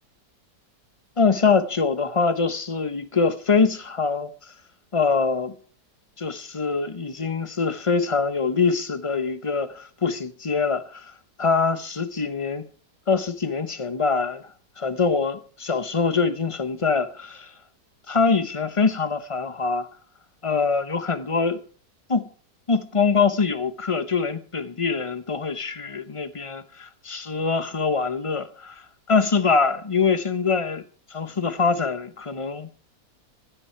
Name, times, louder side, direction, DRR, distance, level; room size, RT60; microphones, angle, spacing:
voice 1, 1.2-4.3 4.9-5.5 6.2-11.1 11.4-12.6 13.1-14.4 14.8-17.5 18.1-19.9 20.4-21.6 22.1-22.3 22.7-28.8 29.1-30.8 31.1-32.7, left 4 dB, 30° left, 0.6 m, -24 dB
16.0 x 12.5 x 4.5 m
omnidirectional pair, 1.8 m